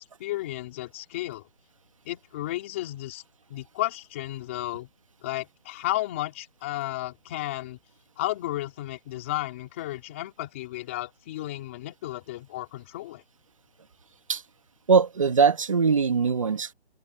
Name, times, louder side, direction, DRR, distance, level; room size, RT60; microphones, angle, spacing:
voice 1, 0.0-1.5 2.1-3.2 3.5-4.9 5.2-7.8 8.2-13.2, left 16 dB, 10° left, 3.5 m, -33 dB
voice 2, 14.9-16.7, right 5 dB, 30° right, 2.2 m, -21 dB
open air
hypercardioid pair, 180°, 34 cm